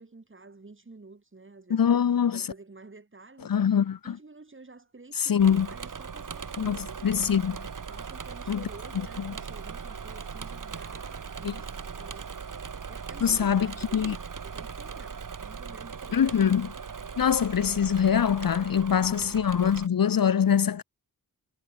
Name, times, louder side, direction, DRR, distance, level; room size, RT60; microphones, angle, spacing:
voice 1, 0.0-3.5 4.0-7.0 7.9-12.4 12.9-16.5 18.9-19.4, right 3 dB, 30° right, 7.2 m, -50 dB
voice 2, 1.7-2.4 3.4-4.2 5.2-5.7 6.6-6.8 7.0-7.6 8.5-8.6 9.2-9.3 11.4-11.5 13.2-14.2 16.1-16.7 17.2-20.8, left 8 dB, 65° left, 1.1 m, -23 dB
Engine / Mechanisms, 5.4-19.9, right 6 dB, 55° right, 2.5 m, -39 dB
wide cardioid pair, 110°, 38 cm